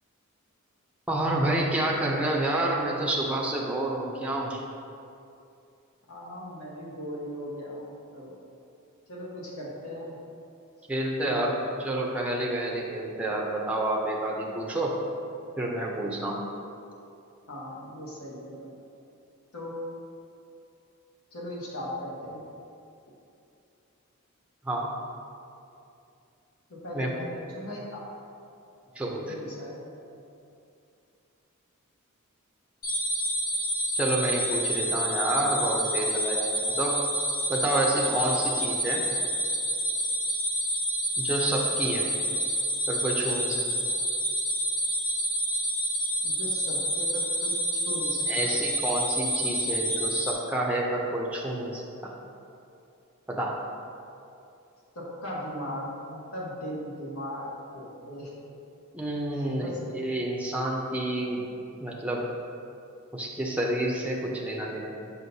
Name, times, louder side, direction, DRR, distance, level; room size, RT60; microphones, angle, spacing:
voice 1, 1.1-4.6 10.9-11.5 11.8-15.0 15.6-16.4 24.6-24.9 26.9-27.1 28.9-29.3 33.9-37.0 37.5-39.0 41.2-42.0 42.9-43.6 48.3-52.1 53.3-53.6 58.9-61.4 61.8-62.3 63.1-65.1, right 1 dB, 5° right, -3 dB, 0.5 m, -29 dB
voice 2, 6.1-8.3 9.1-10.2 11.2-11.5 17.5-18.7 19.5-19.7 21.3-22.4 26.7-28.0 29.2-29.7 38.2-38.3 46.2-48.6 54.9-58.3 59.3-59.8, equal, 70° left, -4 dB, 1.3 m, -38 dB
sound 1, 32.8-50.3, equal, 40° left, 1.0 m, -28 dB
6.2 x 5.7 x 2.7 m, 2.6 s
head